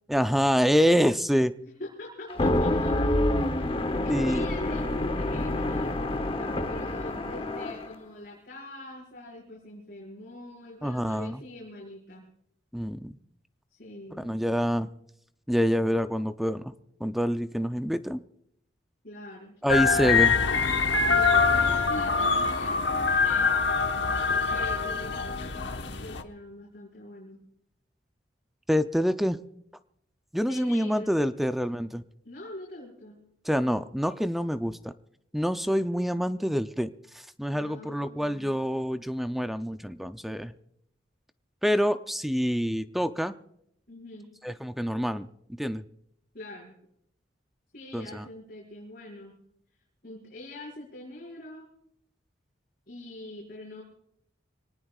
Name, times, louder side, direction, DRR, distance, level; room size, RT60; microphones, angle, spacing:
voice 1, 0.1-1.5 4.1-4.4 10.8-11.4 12.7-13.2 14.1-14.9 15.5-16.7 17.0-18.2 19.6-20.3 28.7-29.4 30.3-32.0 33.5-34.9 35.3-36.9 37.4-40.5 41.6-43.3 44.4-45.3 45.6-45.8 47.9-48.3, equal, ahead, 9 dB, 0.5 m, -26 dB
voice 2, 1.6-2.9 3.4-12.2 13.7-14.4 19.0-19.5 20.9-23.5 24.5-27.4 30.5-31.6 32.2-33.2 37.5-38.6 43.9-44.3 46.3-46.8 47.7-49.3 50.0-51.7 52.9-53.8, left 1 dB, 50° left, -5 dB, 5.3 m, -43 dB
sound 1, 2.3-7.9, left 1 dB, 30° left, 0.9 m, -27 dB
sound 2, 19.7-26.2, left 4 dB, 75° left, 1.2 m, -24 dB
25.5 x 19.0 x 2.4 m, 0.73 s
head